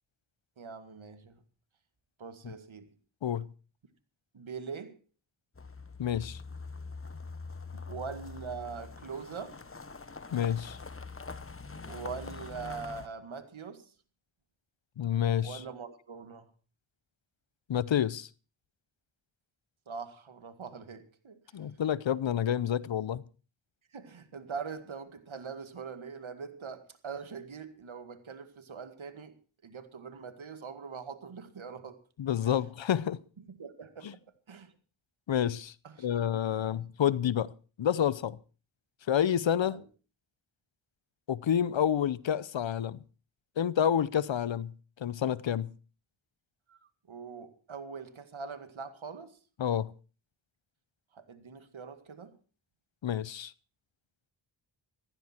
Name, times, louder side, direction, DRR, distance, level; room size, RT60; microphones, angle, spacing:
voice 1, 0.6-1.4 2.2-2.9 4.3-5.0 7.7-9.6 11.7-13.9 15.4-16.5 19.9-21.4 23.9-29.3 29.6-32.0 32.4-32.6 33.4-34.1 34.5-34.7 35.8-36.2 36.7-36.8 39.6-39.8 46.7-46.8 47.1-49.4 51.1-52.4, right 5 dB, 65° right, 2.0 m, -43 dB
sound 1, 5.6-13.1, left 4 dB, 25° left, 1.2 m, -44 dB
voice 2, 6.0-6.4 10.3-10.8 15.0-15.6 17.7-18.3 21.5-23.2 32.2-33.2 34.0-34.1 35.3-37.5 37.8-38.4 39.1-39.8 41.3-43.0 43.6-44.7 45.0-45.7 49.6-49.9 53.0-53.5, left 9 dB, 60° left, 0.8 m, -29 dB
15.5 x 14.5 x 4.4 m
cardioid pair, 50°, 50 cm